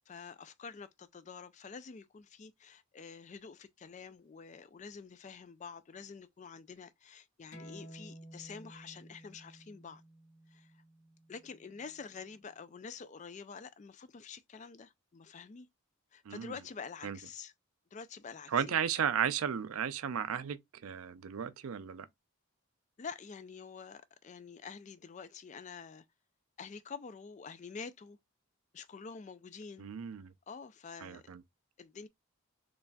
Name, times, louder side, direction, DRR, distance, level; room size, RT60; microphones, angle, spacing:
voice 1, 0.0-10.0 10.5-10.7 11.3-15.7 16.1-17.5 17.9-18.8 23.0-26.0 26.6-28.2 28.7-29.9 30.5-31.2 31.8-32.1, left 5 dB, 35° left, 0.3 m, -47 dB
sound 1, 7.5-12.7, right 1 dB, 90° left, 1.4 m, -54 dB
voice 2, 18.5-22.1 29.8-30.3 31.0-31.4, right 8 dB, 80° right, 0.4 m, -34 dB
3.9 x 3.3 x 2.2 m
head